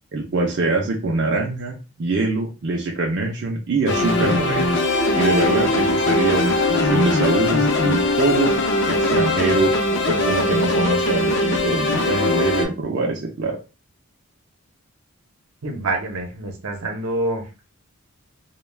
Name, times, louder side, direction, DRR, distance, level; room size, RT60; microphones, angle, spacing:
voice 1, 0.1-4.7 5.1-8.5 8.9-13.6, right 2 dB, 50° right, 0 dB, 0.4 m, -23 dB
sound 1, 3.9-12.6, left 2 dB, 55° left, 0.5 m, -20 dB
voice 2, 15.6-17.5, right 2 dB, 80° right, 2 dB, 0.7 m, -26 dB
2.2 x 2.2 x 3.2 m, 0.31 s
head